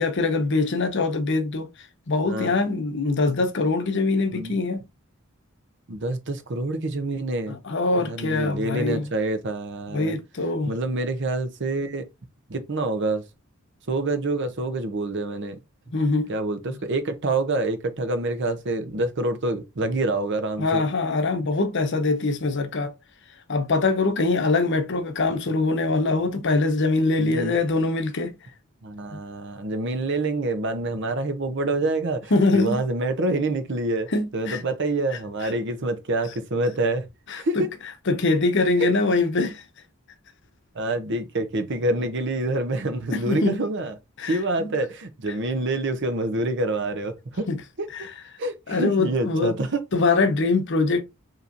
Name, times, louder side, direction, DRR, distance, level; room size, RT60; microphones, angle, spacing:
voice 1, 0.0-1.7 2.1-4.8 7.5-9.1 9.9-10.7 15.9-16.3 20.6-22.9 23.5-28.3 29.1-29.2 32.3-32.8 34.1-34.6 37.3-37.6 38.1-39.6 43.1-43.6 44.2-44.7 47.5-47.6 47.9-48.1 48.7-49.5 49.9-51.0, left 3 dB, 55° left, 0.8 m, -23 dB
voice 2, 5.9-7.6 8.0-10.1 10.7-12.0 12.5-13.2 13.9-15.6 16.3-20.8 27.2-27.5 28.8-37.1 37.4-37.7 38.8-38.9 40.7-43.9 44.2-47.5 47.8-48.1 48.4-49.8, right 2 dB, 55° right, 0.8 m, -27 dB
5.5 x 2.9 x 2.6 m
head